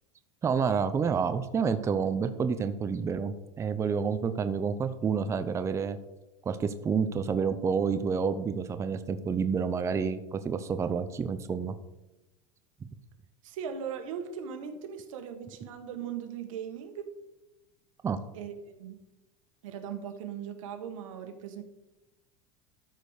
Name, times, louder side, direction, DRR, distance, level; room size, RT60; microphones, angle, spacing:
voice 1, 0.4-6.0 6.5-11.7 18.0-18.2, right 6 dB, 15° right, 10 dB, 0.6 m, -29 dB
voice 2, 13.4-17.1 18.3-19.0 19.6-21.6, right 8 dB, 85° right, 6 dB, 1.8 m, -39 dB
13.0 x 5.2 x 6.5 m, 0.99 s
supercardioid pair, 140°, 16 cm